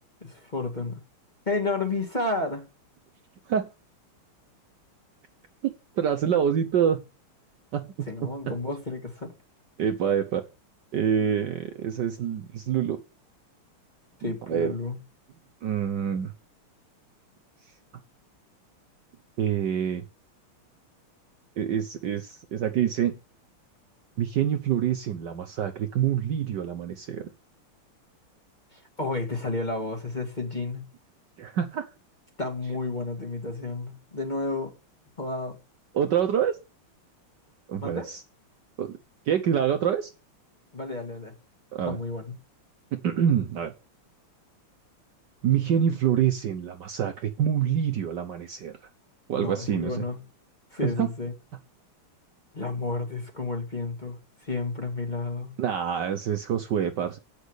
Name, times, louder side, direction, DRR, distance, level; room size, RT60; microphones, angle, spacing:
voice 1, 0.2-1.0 1.5-2.7 8.1-9.3 14.2-15.0 28.7-30.8 32.4-34.7 35.2-35.6 37.8-38.1 40.7-41.3 41.9-42.3 49.3-50.2 50.7-51.3 52.5-55.5, left 3 dB, 20° left, 2.0 m, -31 dB
voice 2, 5.6-7.0 7.7-8.5 9.8-10.4 10.9-13.0 14.2-14.7 15.6-16.3 19.4-20.0 21.6-23.1 24.2-27.3 31.4-31.9 35.9-36.6 37.7-38.2 38.8-39.0 39.3-40.1 41.7-42.0 42.9-43.7 45.4-48.8 49.3-49.9 50.8-51.1 55.6-57.2, right 9 dB, 60° right, 1.3 m, -26 dB
8.4 x 6.1 x 8.1 m
omnidirectional pair, 2.4 m